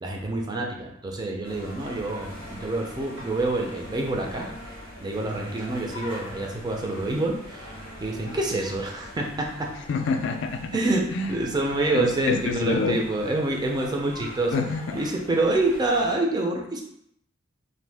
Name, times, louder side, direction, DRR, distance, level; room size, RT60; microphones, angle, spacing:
voice 1, 0.0-7.7 8.0-9.7 10.7-14.5 14.9-16.8, right 2 dB, 20° right, 0 dB, 0.4 m, -27 dB
sound 1, 1.4-16.2, left 1 dB, 80° right, 1.2 m, -42 dB
voice 2, 9.9-10.7 11.1-11.3 11.9-13.0 14.5-15.0, left 4 dB, 60° left, 6 dB, 0.3 m, -26 dB
2.6 x 2.2 x 3.3 m, 0.74 s
head